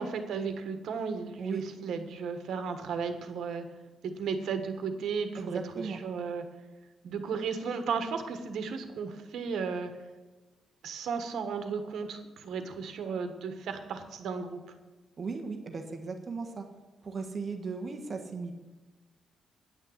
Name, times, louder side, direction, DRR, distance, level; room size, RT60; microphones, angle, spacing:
voice 1, 0.0-3.6 4.0-6.4 7.0-9.9 10.8-14.6, right 5 dB, 80° right, 8 dB, 1.4 m, -34 dB
voice 2, 5.4-6.0 15.2-16.6 17.0-18.5, right 4 dB, 35° right, 4 dB, 1.3 m, -37 dB
9.9 x 6.6 x 8.0 m, 1.2 s
cardioid pair, 140°, 0 cm